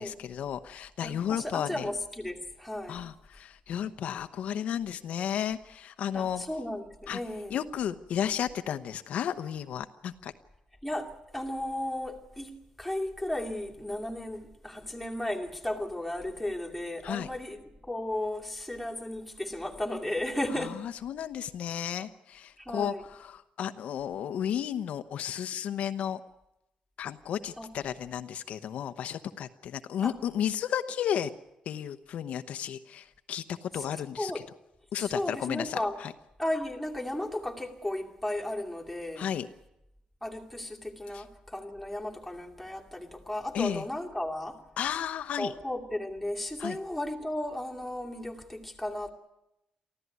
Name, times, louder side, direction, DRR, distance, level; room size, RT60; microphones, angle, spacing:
voice 1, 0.0-1.8 2.9-6.4 7.1-7.2 7.5-10.3 17.0-17.3 20.6-26.2 27.0-31.3 31.7-34.3 34.9-36.1 39.2-39.5 41.1-41.2 43.5-43.8 44.8-45.5 46.6-46.8, left 9 dB, 65° left, 0.9 m, -33 dB
voice 2, 1.0-3.1 6.1-7.6 10.8-20.8 22.6-23.1 27.6-27.7 30.0-30.2 33.7-33.9 34.2-34.4 35.0-36.0 36.4-39.3 40.2-44.6 45.4-49.1, left 1 dB, ahead, 2.4 m, -35 dB
24.0 x 15.0 x 9.4 m
cardioid pair, 170°, 2 cm